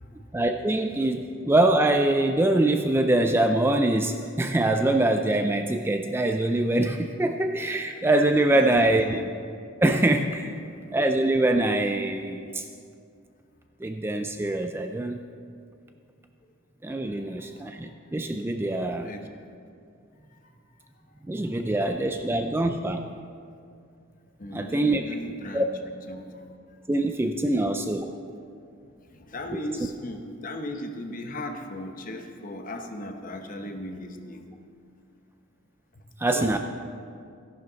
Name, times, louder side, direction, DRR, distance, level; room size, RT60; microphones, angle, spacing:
voice 1, 0.3-9.2 9.8-10.5 10.9-12.7 13.8-15.2 16.8-19.1 21.3-23.0 24.5-25.0 25.5-25.7 26.9-28.1 29.5-29.6 36.2-36.6, right 1 dB, 10° right, 6 dB, 0.3 m, -24 dB
voice 2, 8.5-9.2 10.6-10.7 17.1-17.3 17.8-17.9 18.6-18.7 19.0-19.3 21.4-21.7 24.4-25.8 26.1-26.4 28.3-28.4 29.1-34.5 36.3-36.6, left 1 dB, 40° left, 5 dB, 0.9 m, -37 dB
14.0 x 11.0 x 4.0 m, 2.4 s
head